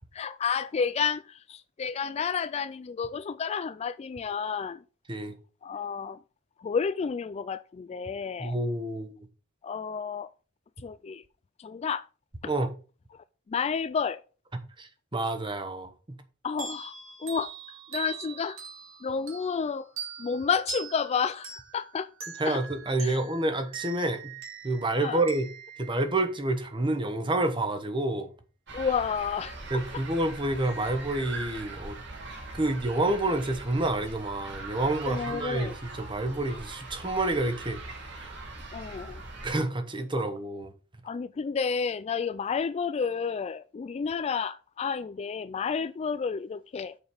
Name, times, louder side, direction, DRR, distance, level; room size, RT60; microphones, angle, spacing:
voice 1, 0.1-4.8 5.6-6.2 6.6-8.6 9.6-10.3 10.8-11.2 11.6-12.1 12.4-12.5 13.1-14.2 16.4-17.5 17.9-18.6 19.0-19.9 20.2-22.1 22.4-22.6 23.0-23.2 25.0-25.2 28.7-30.0 35.1-35.8 38.7-39.2 40.2-40.3 41.0-47.0, left 6 dB, 30° left, 0.3 m, -31 dB
voice 2, 8.4-9.1 12.5-12.7 14.8-15.9 22.4-24.3 24.6-25.5 25.8-28.3 29.7-32.0 32.5-35.7 36.0-37.8 38.2-38.3 39.4-40.7, right 2 dB, 25° right, 1.1 m, -28 dB
sound 1, 16.6-26.9, right 7 dB, 80° right, 2.5 m, -43 dB
sound 2, 28.7-39.6, right 2 dB, 60° right, 2.4 m, -41 dB
7.0 x 5.2 x 5.6 m
head